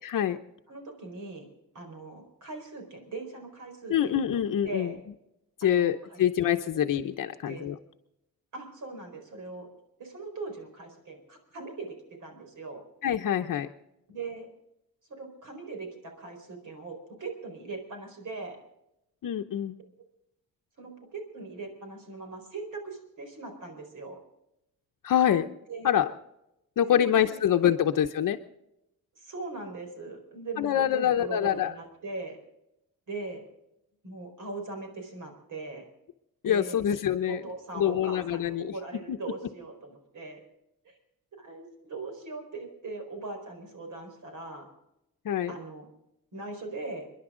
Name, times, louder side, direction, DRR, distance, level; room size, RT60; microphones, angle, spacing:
voice 1, 0.0-0.4 3.9-4.9 5.6-7.8 13.0-13.7 19.2-19.8 25.0-25.5 25.8-26.1 26.8-28.4 30.6-31.7 36.4-37.4 37.7-38.7 39.1-39.2 45.2-45.5, left 10 dB, 60° left, 6 dB, 0.9 m, -25 dB
voice 2, 0.7-1.5 1.7-4.2 4.6-5.0 5.6-6.2 7.5-7.6 8.5-9.7 10.0-12.8 14.1-14.5 15.1-18.6 20.8-24.2 25.7-25.9 26.9-27.2 27.7-27.8 29.1-32.4 33.1-33.4 34.0-35.8 36.4-36.8 37.3-40.4 40.8-41.0 41.4-44.7 45.5-45.9 46.3-47.1, right 3 dB, 55° right, 4 dB, 4.6 m, -40 dB
30.0 x 11.0 x 3.8 m, 0.86 s
wide cardioid pair, 150°, 36 cm